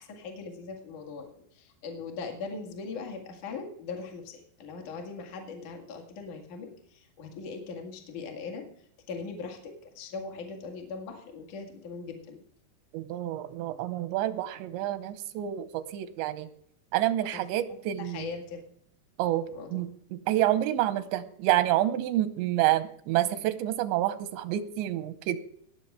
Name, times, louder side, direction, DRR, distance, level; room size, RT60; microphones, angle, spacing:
voice 1, 0.0-8.6 9.1-12.4 17.2-17.4 18.0-18.6 19.5-19.8, left 4 dB, 50° left, 2 dB, 2.9 m, -40 dB
voice 2, 12.9-16.5 16.9-18.3 19.2-19.5 19.7-25.4, right 13 dB, 85° right, 12 dB, 3.0 m, -28 dB
19.0 x 6.9 x 4.8 m, 0.64 s
omnidirectional pair, 5.2 m